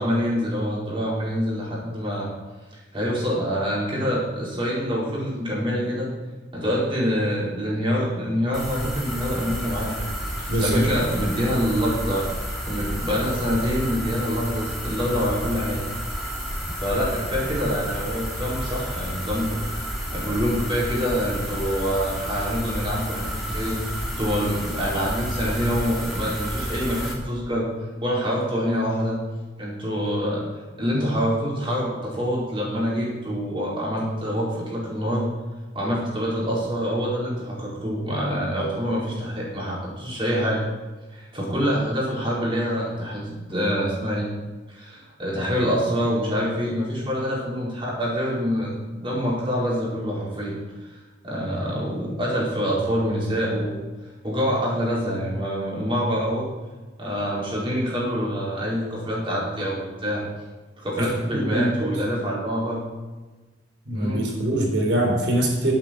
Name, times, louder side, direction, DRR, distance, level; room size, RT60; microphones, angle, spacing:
voice 1, 0.0-2.3 2.9-6.1 6.5-10.1 10.6-12.3 12.6-15.8 16.8-23.8 24.1-27.7 28.0-29.2 29.6-30.4 30.8-35.3 35.7-40.6 41.1-44.3 44.7-48.7 49.0-50.6 51.2-53.8 54.2-56.5 57.0-60.2 60.8-62.9 63.9-64.3, equal, 30° right, -6 dB, 4.7 m, -26 dB
sound 1, 8.5-27.1, equal, ahead, 3.0 m, -31 dB
voice 2, 10.5-10.8 61.0-61.9 63.9-65.7, right 1 dB, 80° right, 0 dB, 3.7 m, -23 dB
11.0 x 9.0 x 6.5 m, 1.3 s
head